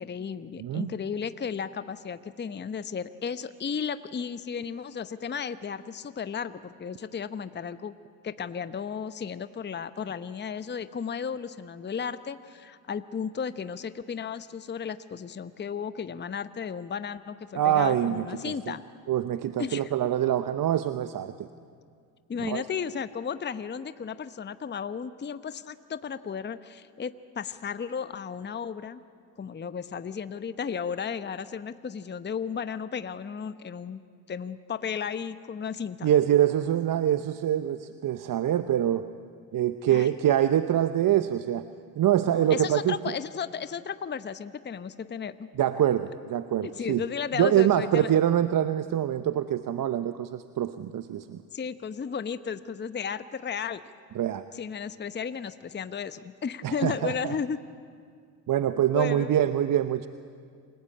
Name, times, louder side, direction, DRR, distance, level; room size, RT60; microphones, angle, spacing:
voice 1, 0.0-7.9 8.2-18.8 19.6-19.9 22.3-29.0 29.4-34.0 34.3-36.1 39.9-40.1 42.2-45.5 46.6-48.1 51.5-53.8 54.5-57.6 58.9-59.4, left 6 dB, 20° left, 13 dB, 0.9 m, -34 dB
voice 2, 0.6-0.9 17.5-18.7 19.1-21.5 22.4-22.6 36.0-39.0 39.5-41.6 42.0-43.0 45.6-47.0 47.4-51.4 54.1-54.4 56.6-57.3 58.5-60.1, right 11 dB, 45° right, 11 dB, 0.9 m, -25 dB
28.0 x 18.0 x 8.6 m, 2.2 s
hypercardioid pair, 60°, 48 cm